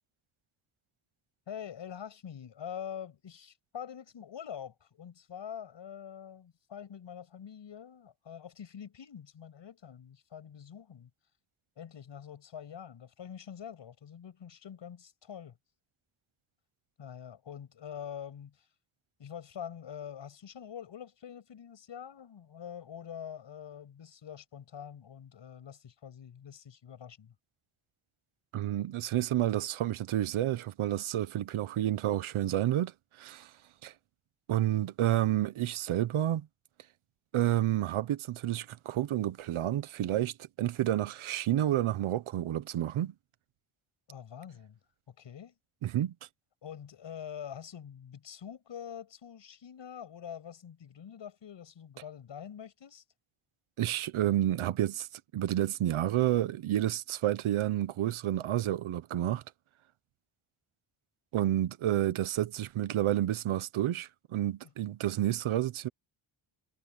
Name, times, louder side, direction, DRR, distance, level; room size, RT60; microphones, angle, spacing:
voice 1, 1.5-11.1 11.8-15.6 17.0-18.7 19.2-27.3 44.1-44.8 45.1-45.5 46.6-53.0, left 8 dB, 60° left, 6.7 m, -45 dB
voice 2, 28.5-32.9 33.2-33.5 33.8-33.9 34.5-36.5 37.3-43.1 45.8-46.1 53.8-55.1 55.3-59.4 61.3-65.9, right 13 dB, 80° right, 1.1 m, -30 dB
wide cardioid pair, 145°, 49 cm